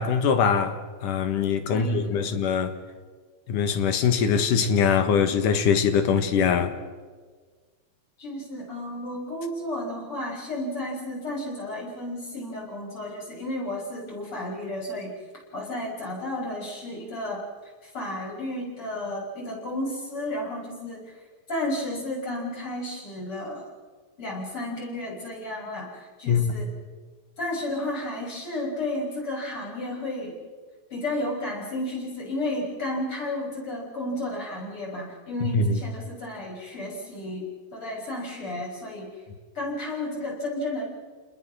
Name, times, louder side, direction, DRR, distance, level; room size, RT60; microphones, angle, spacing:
voice 1, 0.0-2.7 3.5-6.7 26.3-26.6 35.5-35.7, left 6 dB, 90° left, 3.1 m, -22 dB
voice 2, 1.7-2.4 8.2-15.1 15.5-21.1 21.5-23.7 24.2-26.7 27.4-30.4 30.9-39.1 39.6-40.8, left 1 dB, 40° left, 7.0 m, -32 dB
29.5 x 20.5 x 6.3 m
omnidirectional pair, 3.6 m